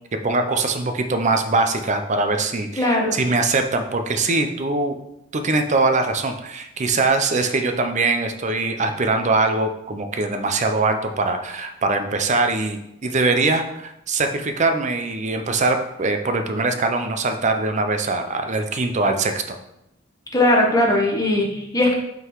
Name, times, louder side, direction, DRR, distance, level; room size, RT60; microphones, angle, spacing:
voice 1, 0.2-5.0 5.3-19.6, right 3 dB, 35° right, 6 dB, 0.6 m, -22 dB
voice 2, 2.8-3.2 20.3-21.9, left 1 dB, 20° left, -1 dB, 1.0 m, -19 dB
5.5 x 3.9 x 4.6 m, 0.84 s
head